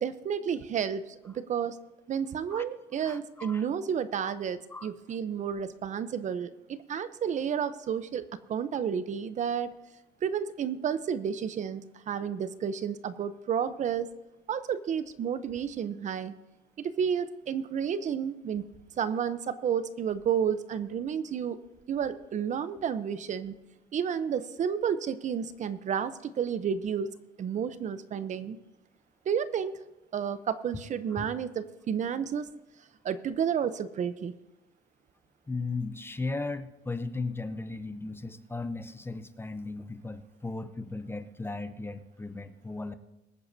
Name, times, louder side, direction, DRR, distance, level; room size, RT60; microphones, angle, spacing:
voice 1, 0.0-1.8 2.1-9.7 10.2-14.1 14.5-16.3 16.8-18.6 19.0-21.6 21.9-23.6 23.9-27.1 27.4-28.6 29.3-29.8 30.1-32.5 33.0-34.4, right 7 dB, 45° right, 13 dB, 0.7 m, -31 dB
voice 2, 3.0-3.7 4.7-4.9 31.1-31.2 35.5-42.9, left 3 dB, 15° left, 11 dB, 0.7 m, -36 dB
22.5 x 9.4 x 2.7 m, 1.0 s
cardioid pair, 110°, 17 cm